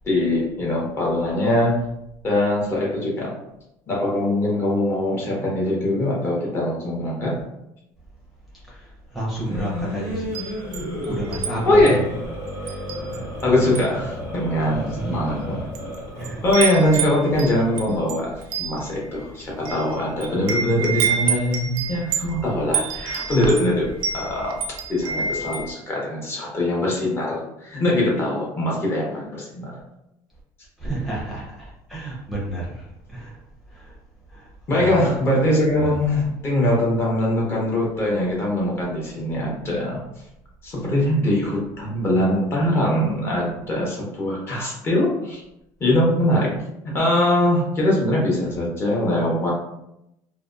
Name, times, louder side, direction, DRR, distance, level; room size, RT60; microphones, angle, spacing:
voice 1, 0.0-1.9 2.2-3.4 3.9-7.4 11.7-12.0 13.4-15.6 16.4-24.6 24.9-29.8 34.7-40.0 40.6-45.4 45.8-46.6 46.8-49.5, left 1 dB, 30° left, -4 dB, 0.8 m, -22 dB
voice 2, 8.7-10.5 10.7-12.2 12.6-12.9 14.7-15.6 16.2-16.5 30.8-33.4 33.7-33.9 34.3-34.9 35.7-35.9 48.3-48.7, right 1 dB, ahead, -7 dB, 0.6 m, -32 dB
sound 1, 9.2-18.0, equal, 90° left, 1.4 m, -33 dB
Wind chime, 10.2-11.5 11.9-12.1 12.7-13.4 13.7-14.0 14.7-14.8 15.5-16.0 16.2-25.7, right 6 dB, 85° right, 0.4 m, -28 dB
2.7 x 2.1 x 2.4 m, 0.84 s
cardioid pair, 145°, 8 cm